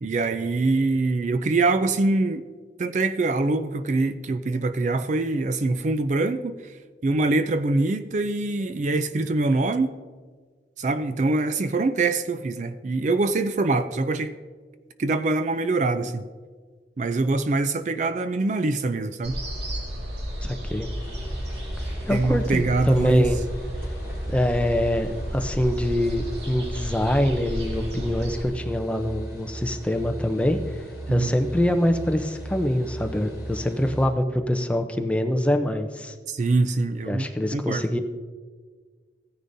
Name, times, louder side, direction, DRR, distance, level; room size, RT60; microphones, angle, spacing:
voice 1, 0.0-2.5 2.8-6.8 7.0-9.9 10.8-14.3 15.0-16.2 17.0-19.4 22.1-23.3 31.1-31.3 36.3-37.8, right 3 dB, 40° right, 11 dB, 0.4 m, -24 dB
sound 1, 19.2-28.4, equal, 75° right, 2.0 m, -33 dB
voice 2, 20.4-20.9 22.1-23.4 24.3-30.7 31.1-36.1 37.0-38.0, left 1 dB, 5° left, 5 dB, 0.6 m, -24 dB
sound 2, 21.0-34.1, right 1 dB, 15° right, 3.0 m, -37 dB
15.5 x 9.9 x 2.7 m, 1.5 s
head